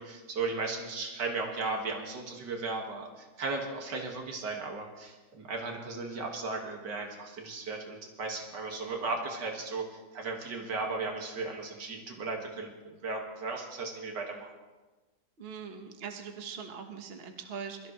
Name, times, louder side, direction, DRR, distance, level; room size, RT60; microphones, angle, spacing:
voice 1, 0.0-14.5, right 3 dB, 65° right, 1 dB, 2.5 m, -36 dB
voice 2, 15.4-17.9, right 6 dB, 35° right, 4 dB, 1.3 m, -41 dB
23.0 x 13.5 x 3.2 m, 1.2 s
omnidirectional pair, 2.0 m